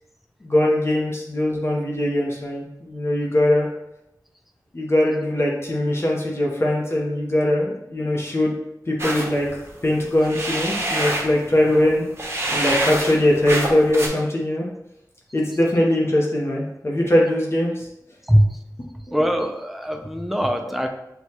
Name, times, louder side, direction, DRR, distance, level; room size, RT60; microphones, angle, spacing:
voice 1, 0.4-3.7 4.7-8.5 8.9-9.5 9.8-12.0 12.5-14.7 15.3-17.9, left 1 dB, 35° left, -3 dB, 0.7 m, -21 dB
sound 1, 9.0-14.1, right 1 dB, 35° right, 0.8 m, -27 dB
voice 2, 18.3-18.6 19.1-20.9, equal, ahead, 4 dB, 0.4 m, -21 dB
6.3 x 2.3 x 2.8 m, 0.85 s
wide cardioid pair, 85°, 7 cm